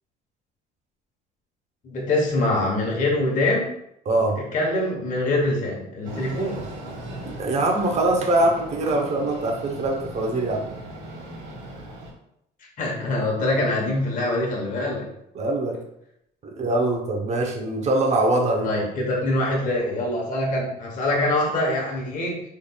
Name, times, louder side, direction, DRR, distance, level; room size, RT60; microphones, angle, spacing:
voice 1, 1.8-3.7 4.5-6.6 12.8-15.1 18.6-22.4, left 1 dB, 50° left, -2 dB, 1.0 m, -24 dB
voice 2, 4.1-4.4 7.4-10.7 15.3-15.8 16.4-18.7, right 2 dB, 40° right, 1 dB, 0.7 m, -23 dB
Train, 6.0-12.1, right 1 dB, 75° right, 1.3 m, -38 dB
3.7 x 3.2 x 2.2 m, 0.77 s
cardioid pair, 110°, 17 cm